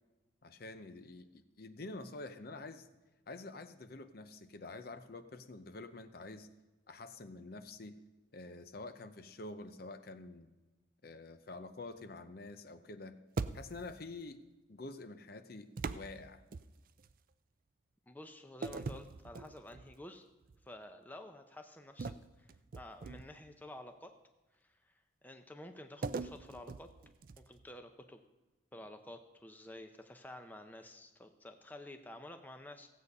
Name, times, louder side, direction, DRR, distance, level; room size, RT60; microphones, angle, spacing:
voice 1, 0.4-2.9 3.3-6.5 6.9-8.0 8.3-10.5 11.0-13.2 13.5-14.4 14.7-16.4, left 2 dB, 50° left, 9 dB, 0.7 m, -47 dB
sound 1, 13.4-14.0 15.8-17.1 18.6-20.0 20.4-20.7 22.0-23.5 26.0-27.7, right 4 dB, 45° right, 0.4 m, -42 dB
voice 2, 18.1-20.2 20.6-22.1 22.4-24.1 24.6-24.9 25.2-26.9 27.4-28.2 28.7-32.9, left 1 dB, 10° left, 6 dB, 0.6 m, -51 dB
16.0 x 8.3 x 5.4 m, 1.1 s
head